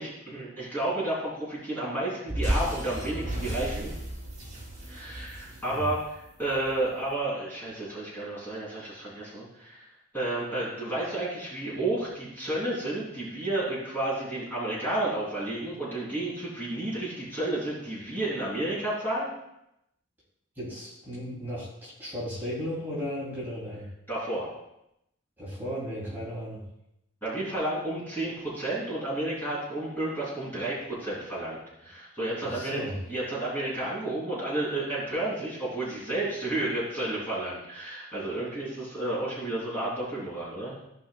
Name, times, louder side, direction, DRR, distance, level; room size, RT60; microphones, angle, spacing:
voice 1, 0.0-3.9 4.9-9.9 10.1-19.3 24.1-24.5 27.2-32.8 33.1-40.8, right 1 dB, 10° left, -8 dB, 3.1 m, -31 dB
sound 1, 2.3-6.7, right 1 dB, 35° right, 2.9 m, -33 dB
voice 2, 20.6-23.8 25.4-26.6 32.4-33.0, equal, 10° right, -10 dB, 2.8 m, -35 dB
16.0 x 5.4 x 2.3 m, 0.83 s
head